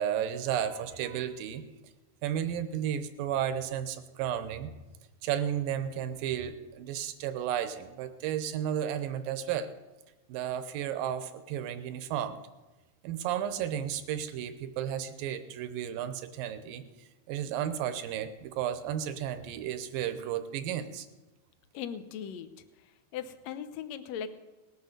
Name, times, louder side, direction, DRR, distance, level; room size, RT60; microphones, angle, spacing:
voice 1, 0.0-1.6 2.2-4.7 5.2-9.7 10.3-12.4 13.0-16.8 17.3-21.1, right 10 dB, 85° right, 10 dB, 2.6 m, -33 dB
voice 2, 21.7-22.6 23.1-24.3, left 8 dB, 70° left, 10 dB, 1.7 m, -38 dB
19.0 x 8.3 x 6.7 m, 1.1 s
omnidirectional pair, 4.0 m